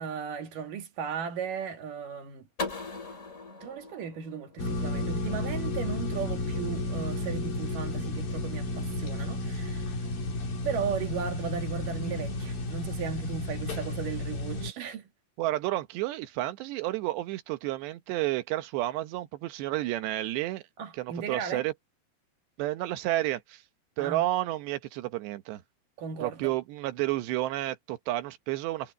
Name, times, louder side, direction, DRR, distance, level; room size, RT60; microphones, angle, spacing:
voice 1, 0.0-2.5 3.6-9.9 10.6-15.1 20.8-21.6 24.0-24.3 26.0-26.5, right 7 dB, 55° right, 3.5 m, -36 dB
Light Switch of doom, 2.6-5.4, left 3 dB, 20° left, 2.7 m, -39 dB
sound 1, 4.6-14.7, left 1 dB, 55° left, 5.7 m, -32 dB
voice 2, 15.4-20.6 21.0-21.7 22.6-23.6 24.0-25.6 26.2-28.9, right 16 dB, 80° right, 3.2 m, -31 dB
omnidirectional pair, 4.9 m